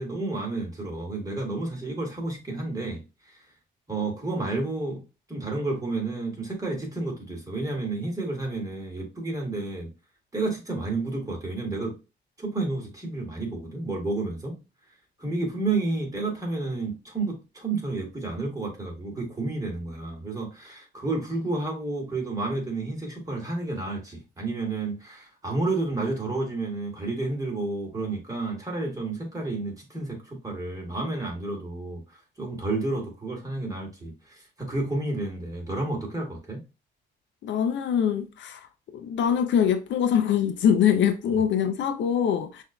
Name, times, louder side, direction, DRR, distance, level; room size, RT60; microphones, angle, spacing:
voice 1, 0.0-3.0 3.9-5.0 5.3-9.9 10.3-12.0 12.4-14.6 15.2-36.6, right 2 dB, 15° right, 1.9 m, -31 dB
voice 2, 37.4-38.6 38.9-42.6, left 8 dB, 70° left, 0.5 m, -23 dB
5.8 x 2.7 x 2.2 m
cardioid pair, 90°, 20 cm